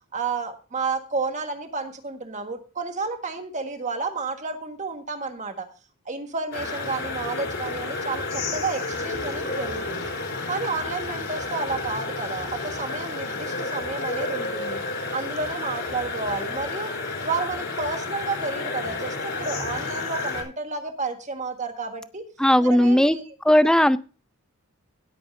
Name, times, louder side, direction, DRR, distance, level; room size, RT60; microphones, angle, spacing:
voice 1, 0.1-5.7 6.0-10.1 10.5-14.8 15.1-16.9 17.2-22.3 22.6-23.2, right 4 dB, 35° right, 6 dB, 1.6 m, -31 dB
sound 1, 6.5-20.4, left 3 dB, 55° left, 3.8 m, -31 dB
voice 2, 22.4-23.2 23.4-24.0, left 1 dB, 5° left, 14 dB, 0.4 m, -17 dB
16.5 x 8.7 x 2.6 m, 0.35 s
head